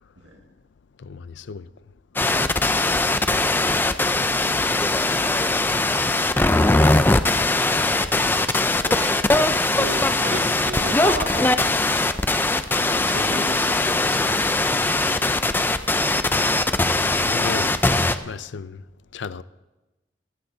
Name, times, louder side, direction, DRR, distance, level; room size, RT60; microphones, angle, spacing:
voice 1, 1.0-1.7 4.3-4.6 15.0-15.1 16.3-16.4 17.2-17.8 18.3-18.8 19.1-19.4, left 5 dB, 90° left, 0.5 m, -35 dB
sound 1, 2.2-18.2, left 2 dB, 10° left, 0.4 m, -20 dB
voice 2, 3.2-3.5 6.8-7.0 7.7-8.2 8.5-8.6 8.8-9.1 9.7-11.5 12.8-14.5, right 1 dB, 85° right, 2.2 m, -34 dB
18.5 x 16.0 x 2.7 m
head